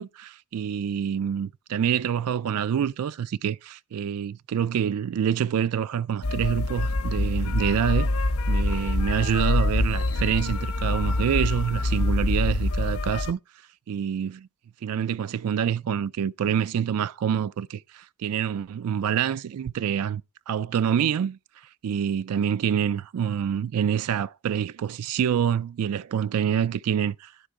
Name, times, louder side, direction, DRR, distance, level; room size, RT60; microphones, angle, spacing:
voice 1, 0.0-8.1 8.5-13.4 13.9-14.5 14.8-20.2 20.5-21.4 21.8-27.3, right 8 dB, 80° right, 0.4 m, -26 dB
sound 1, 6.2-13.3, left 2 dB, 70° left, 0.7 m, -25 dB
11.5 x 4.4 x 4.8 m
head